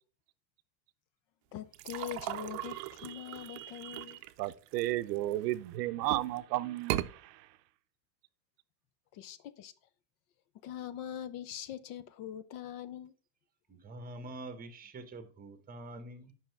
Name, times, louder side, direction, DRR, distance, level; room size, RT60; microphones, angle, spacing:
voice 1, 1.5-4.2 9.1-9.7 10.6-13.1, left 10 dB, 45° left, 0.5 m, -43 dB
sound 1, 1.7-5.5 6.0-6.4 6.8-7.1, right 15 dB, 60° right, 0.6 m, -38 dB
voice 2, 3.1-7.5, right 16 dB, 90° right, 0.7 m, -35 dB
voice 3, 13.7-16.3, right 2 dB, 20° right, 1.0 m, -45 dB
7.6 x 5.6 x 4.5 m
supercardioid pair, 145°, 48 cm